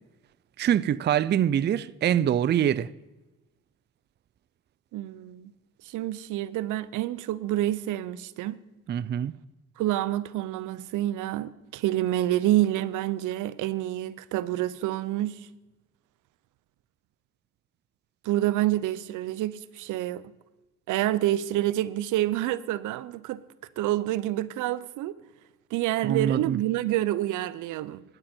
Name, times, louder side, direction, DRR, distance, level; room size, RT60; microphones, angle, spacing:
voice 1, 0.6-2.9 8.9-9.3 26.0-26.6, right 10 dB, 35° right, 0.4 m, -24 dB
voice 2, 4.9-5.5 5.8-8.6 9.8-15.4 18.2-20.2 20.9-23.4 23.8-25.2 25.7-28.0, right 14 dB, 85° right, 0.6 m, -28 dB
17.0 x 10.5 x 4.3 m
cardioid pair, 90°, 30 cm